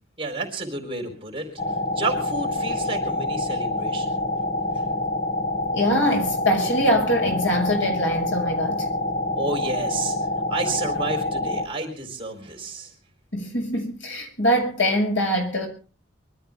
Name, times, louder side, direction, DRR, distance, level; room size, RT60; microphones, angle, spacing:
voice 1, 0.2-1.6 2.0-4.2 4.7-4.8 9.4-10.2 10.5-12.9, right 3 dB, 30° right, 4.2 m, -31 dB
sound 1, 1.6-11.7, left 2 dB, 35° left, 2.9 m, -26 dB
voice 2, 5.7-8.9 13.3-15.7, equal, 70° left, 5.8 m, -23 dB
24.5 x 13.0 x 3.6 m
head